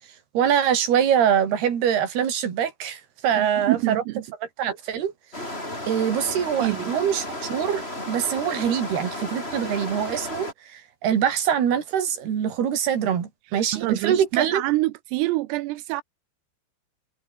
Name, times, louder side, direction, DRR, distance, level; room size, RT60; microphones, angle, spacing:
voice 1, 0.3-4.0 4.6-5.1 5.9-14.6, right 8 dB, 55° right, 5.1 m, -24 dB
voice 2, 3.4-4.2 6.6-6.9 13.7-16.0, right 19 dB, 85° right, 3.6 m, -26 dB
sound 1, 5.3-10.5, left 1 dB, 10° left, 8.0 m, -33 dB
omnidirectional pair, 5.9 m